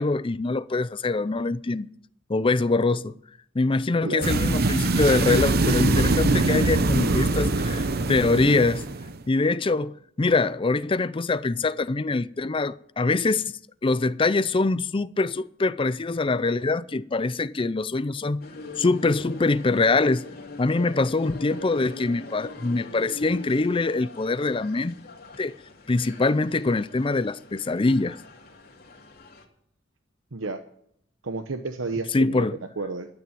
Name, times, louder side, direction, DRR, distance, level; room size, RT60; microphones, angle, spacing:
voice 1, 0.0-1.9 2.3-3.2 3.5-8.8 9.3-13.4 13.8-18.4 18.8-20.2 20.6-25.0 25.4-25.6 25.9-28.2 32.1-32.6, left 3 dB, 25° left, 0.5 m, -24 dB
sound 1, 4.2-9.2, right 2 dB, 50° right, 0.8 m, -23 dB
sound 2, 18.4-29.5, left 2 dB, 50° left, 2.6 m, -42 dB
voice 2, 30.3-30.6 31.2-32.5 32.8-33.1, right 3 dB, 90° right, 0.9 m, -31 dB
12.5 x 9.3 x 8.9 m
head